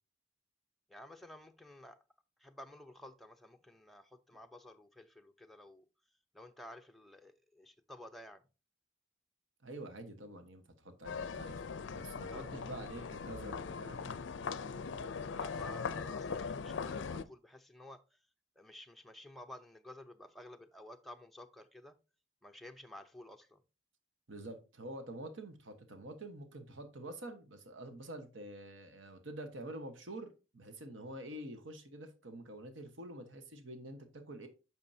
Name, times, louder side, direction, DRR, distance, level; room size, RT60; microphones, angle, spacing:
voice 1, 0.9-2.0 2.4-5.9 6.3-8.4 12.3-12.4 15.3-18.2 18.6-21.9 22.4-23.6, left 1 dB, ahead, 0.5 m, -52 dB
voice 2, 9.6-11.6 11.9-14.2 24.3-34.5, right 1 dB, 75° right, 1.2 m, -47 dB
sound 1, 11.0-17.2, left 5 dB, 65° left, 0.4 m, -40 dB
8.8 x 6.1 x 2.7 m
head